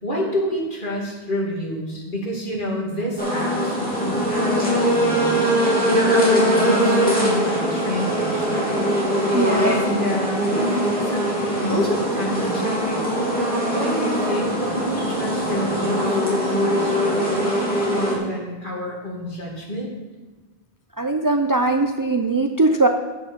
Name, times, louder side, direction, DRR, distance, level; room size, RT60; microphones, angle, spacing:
voice 1, 0.0-8.9 9.6-11.4 11.6-13.0 13.3-19.9, left 1 dB, 50° left, -3 dB, 2.5 m, -28 dB
sound 1, 3.2-18.2, equal, 10° left, 2.6 m, -22 dB
voice 2, 9.3-9.7 21.0-22.9, right 3 dB, 30° right, 4 dB, 0.4 m, -20 dB
9.4 x 8.2 x 5.3 m, 1.2 s
omnidirectional pair, 1.1 m